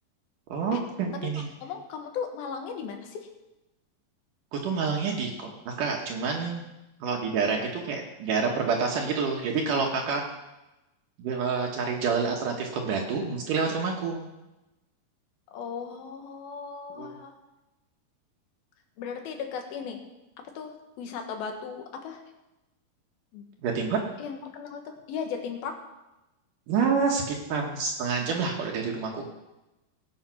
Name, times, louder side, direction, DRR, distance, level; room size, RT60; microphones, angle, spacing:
voice 1, 0.5-1.5 4.5-6.6 7.0-10.2 11.2-14.3 17.0-17.1 23.6-24.0 26.7-29.2, right 5 dB, 70° right, 1 dB, 2.6 m, -28 dB
voice 2, 1.6-3.3 15.5-17.3 19.0-20.0 20.5-22.2 23.3-23.4 24.2-25.7, left 6 dB, 85° left, 4 dB, 3.2 m, -36 dB
18.0 x 7.1 x 5.8 m, 0.99 s
omnidirectional pair, 4.2 m